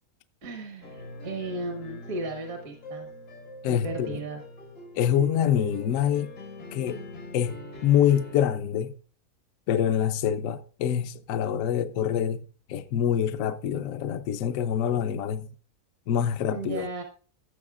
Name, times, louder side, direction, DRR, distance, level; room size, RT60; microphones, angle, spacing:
voice 1, 0.4-3.1 3.7-4.4 16.5-17.0, right 2 dB, 70° right, 1.5 m, -35 dB
sound 1, 0.8-8.4, left 1 dB, 85° left, 2.2 m, -43 dB
voice 2, 3.6-4.2 4.9-6.3 6.7-7.0 7.3-8.9 9.7-12.4 12.7-15.5 16.1-16.9, left 9 dB, 70° left, 0.9 m, -25 dB
15.0 x 7.1 x 2.4 m
omnidirectional pair, 1.6 m